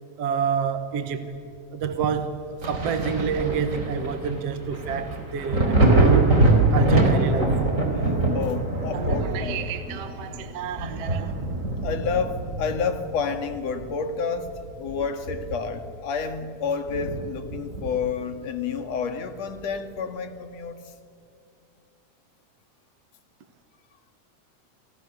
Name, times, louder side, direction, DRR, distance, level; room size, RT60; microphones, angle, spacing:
voice 1, 0.2-1.4 1.7-6.4 6.7-7.6 8.9-11.3, right 7 dB, 60° right, 9 dB, 2.3 m, -29 dB
Thunder, 2.6-14.0 14.4-15.9 16.2-16.3 16.9-18.2 19.6-19.7, right 2 dB, 25° right, 4.2 m, -24 dB
voice 2, 8.0-9.6 10.2-10.5 11.8-14.5 14.8-20.8, left 5 dB, 65° left, 8 dB, 3.0 m, -29 dB
29.5 x 28.5 x 7.0 m, 2.4 s
omnidirectional pair, 3.3 m